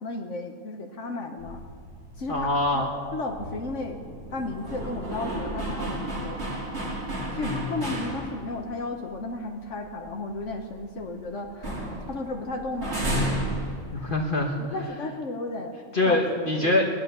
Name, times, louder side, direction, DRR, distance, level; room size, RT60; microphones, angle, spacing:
voice 1, 0.0-1.6 2.2-2.8 3.1-4.0 4.3-6.4 7.3-13.1 14.0-14.1 14.6-15.8 16.1-16.2 16.6-16.7, left 2 dB, 65° left, 3 dB, 1.4 m, -34 dB
sound 1, 1.4-8.7 9.1-9.2 9.6-11.2 11.5-14.5, right 1 dB, 55° right, 2.7 m, -33 dB
voice 2, 2.3-2.9 7.3-7.6 13.9-14.6 15.9-16.9, left 2 dB, 40° left, 0 dB, 1.5 m, -24 dB
18.5 x 11.5 x 6.8 m, 2.3 s
omnidirectional pair, 1.4 m